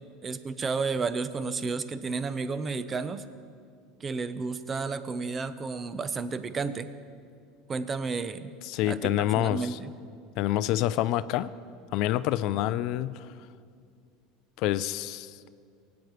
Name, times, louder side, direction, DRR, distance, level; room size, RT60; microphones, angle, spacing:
voice 1, 0.2-3.2 4.0-6.9 7.7-8.5 8.8-9.9, right 4 dB, 30° right, 12 dB, 0.7 m, -32 dB
voice 2, 8.6-9.8 10.4-11.5 11.9-13.3 14.6-15.4, left 14 dB, 60° left, 15 dB, 0.4 m, -27 dB
20.5 x 9.0 x 3.2 m, 2.3 s
hypercardioid pair, 85°, 0 cm